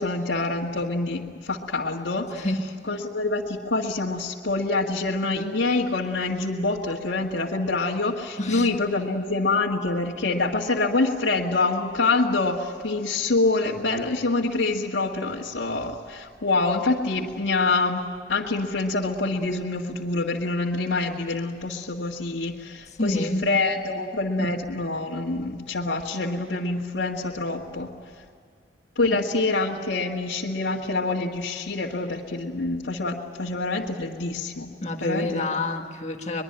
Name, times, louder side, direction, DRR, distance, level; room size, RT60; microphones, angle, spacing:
voice 1, 0.0-2.5 2.9-27.9 29.0-34.7 35.0-35.4, left 3 dB, 75° left, -4 dB, 2.0 m, -26 dB
voice 2, 2.4-2.8 8.4-8.7 23.0-23.5 29.1-29.2 34.8-36.4, left 2 dB, 40° left, 4 dB, 1.8 m, -28 dB
23.5 x 22.0 x 8.9 m, 2.1 s
head